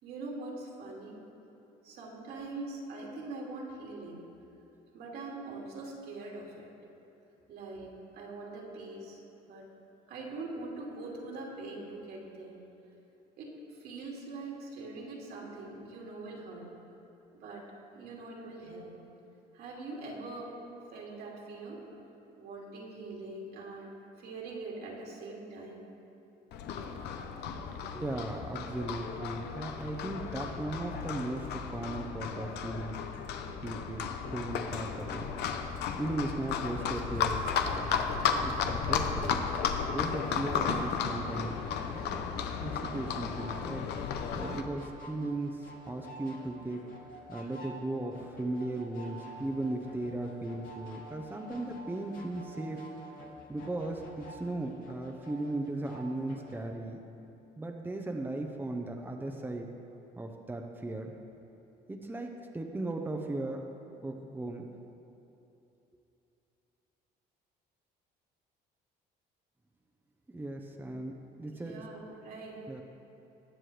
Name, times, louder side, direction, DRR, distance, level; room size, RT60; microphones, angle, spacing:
voice 1, 0.0-1.2 1.8-4.3 4.9-6.7 7.5-9.7 10.1-12.6 13.4-16.7 17.3-17.7 17.9-19.0 19.5-20.5 20.9-21.8 22.4-25.8 71.5-72.6, right 2 dB, 75° right, -3 dB, 2.5 m, -43 dB
Livestock farm animals working animals, 26.5-44.6, left 6 dB, 80° left, 0.8 m, -34 dB
voice 2, 27.9-33.0 33.6-35.3 36.0-38.0 38.4-39.4 39.9-41.6 41.9-42.2 42.6-43.9 44.3-46.8 47.3-52.8 53.5-57.0 57.6-59.7 60.2-61.1 61.9-63.6 64.0-64.7 70.3-71.8 72.7-72.8, right 2 dB, 10° right, 2 dB, 0.8 m, -37 dB
sound 1, 40.1-56.7, equal, 55° left, 1.8 m, -50 dB
20.5 x 7.6 x 3.3 m, 2.9 s
cardioid pair, 110°, 17 cm